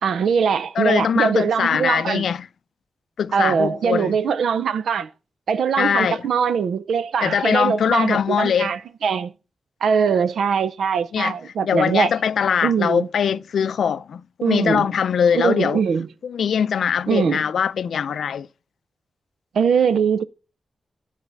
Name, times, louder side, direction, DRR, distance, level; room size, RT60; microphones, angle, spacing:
voice 1, 0.0-2.2 3.3-5.1 5.5-9.3 9.8-12.1 12.6-13.1 14.4-14.9 15.3-16.1 17.1-17.5 19.5-20.2, right 6 dB, 85° right, 0.6 m, -21 dB
voice 2, 0.8-2.5 3.2-4.1 5.8-6.2 7.2-8.7 11.1-11.3 11.6-15.8 16.2-18.5, left 7 dB, 80° left, 0.4 m, -22 dB
12.0 x 4.1 x 7.4 m
cardioid pair, 75°, 0 cm